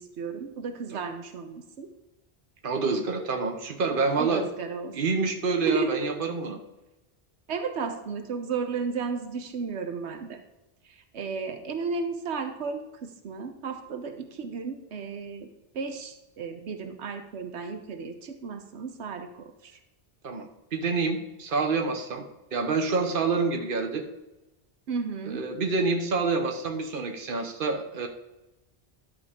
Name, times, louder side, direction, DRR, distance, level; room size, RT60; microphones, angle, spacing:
voice 1, 0.0-1.9 4.2-5.2 5.6-6.1 7.5-10.4 10.8-15.5 15.7-19.8 24.9-25.4, right 5 dB, 85° right, 7 dB, 1.1 m, -34 dB
voice 2, 2.6-4.5 4.9-6.6 20.2-22.2 22.5-24.1 25.3-28.1, right 4 dB, 55° right, 4 dB, 1.1 m, -27 dB
11.5 x 6.8 x 3.6 m, 1.0 s
omnidirectional pair, 1.1 m